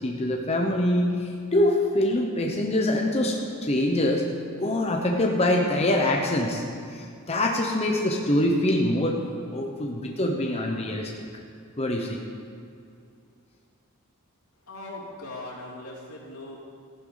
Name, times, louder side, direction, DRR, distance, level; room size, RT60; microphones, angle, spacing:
voice 1, 0.0-4.3 4.6-6.6 6.9-9.2 9.5-11.1 11.8-12.2, left 1 dB, 30° left, 1 dB, 1.0 m, -24 dB
voice 2, 14.6-16.6, left 2 dB, 90° left, -5 dB, 3.3 m, -39 dB
14.5 x 11.5 x 4.0 m, 2.4 s
head